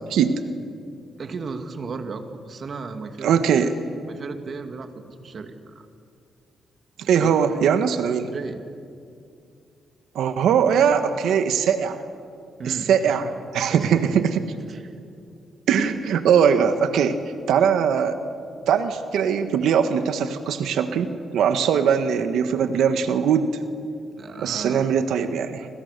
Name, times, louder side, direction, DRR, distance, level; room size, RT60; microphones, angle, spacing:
voice 1, 1.2-3.8 4.1-5.9 7.1-7.4 8.3-8.6 12.6-13.2 13.7-13.9 14.7-14.9 24.1-24.9, right 4 dB, 45° right, 6 dB, 2.5 m, -35 dB
voice 2, 3.2-3.7 7.0-8.3 10.1-12.0 12.6-14.4 15.7-17.2 17.5-18.2 18.7-23.5 24.4-25.7, right 7 dB, 85° right, 9 dB, 1.5 m, -21 dB
29.5 x 26.5 x 6.9 m, 2.4 s
cardioid pair, 105°, 0 cm